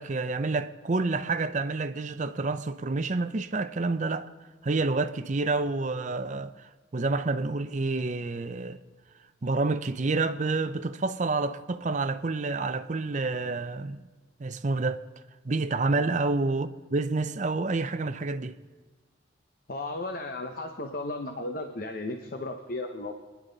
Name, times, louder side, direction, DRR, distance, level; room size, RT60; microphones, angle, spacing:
voice 1, 0.0-4.3 4.6-8.8 9.4-14.0 14.4-15.0 15.4-18.6, right 3 dB, 40° right, 0.6 m, -28 dB
voice 2, 19.7-23.1, left 2 dB, 50° left, 0.9 m, -35 dB
26.5 x 10.5 x 4.0 m
head